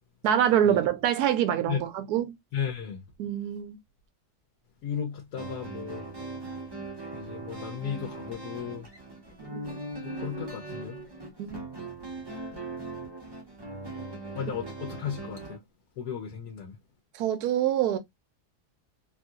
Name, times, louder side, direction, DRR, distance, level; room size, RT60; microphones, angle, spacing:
voice 1, 0.2-2.4 3.2-3.8 9.4-9.6 11.4-11.6 17.2-18.0, right 10 dB, 70° right, 1.1 m, -25 dB
voice 2, 2.5-3.0 4.8-6.1 7.1-8.9 9.7-9.8 10.2-11.0 14.3-15.6 16.0-16.8, left 8 dB, 70° left, 1.3 m, -35 dB
sound 1, 5.4-15.6, right 2 dB, 25° right, 0.5 m, -39 dB
3.2 x 2.7 x 2.4 m
omnidirectional pair, 1.8 m